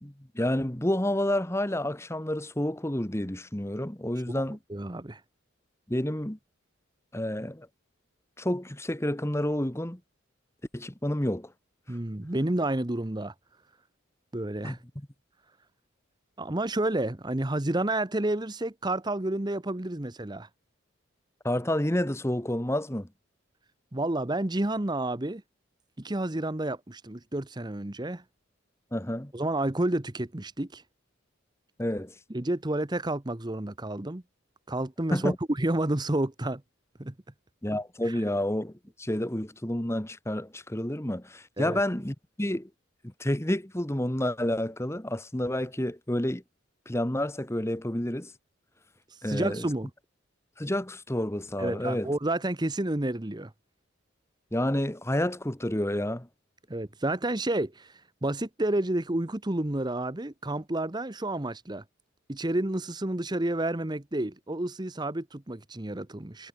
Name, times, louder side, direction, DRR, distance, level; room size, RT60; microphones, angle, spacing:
voice 1, 0.0-4.6 5.9-6.4 7.1-7.7 8.4-10.0 10.7-11.5 14.6-14.8 21.4-23.1 28.9-29.3 31.8-32.1 35.1-35.4 37.6-38.7 39.0-42.7 43.0-46.4 46.9-48.3 49.2-49.7 50.6-52.1 54.5-56.3, left 1 dB, 15° left, 1.3 m, -29 dB
voice 2, 4.7-5.2 11.9-13.3 14.3-14.8 16.4-20.5 23.9-25.4 26.0-28.2 29.3-30.8 32.3-34.2 34.7-36.6 37.0-37.1 38.0-38.2 41.6-41.8 49.1-49.9 51.6-53.5 56.7-61.8 62.3-66.5, right 1 dB, 20° right, 1.0 m, -30 dB
head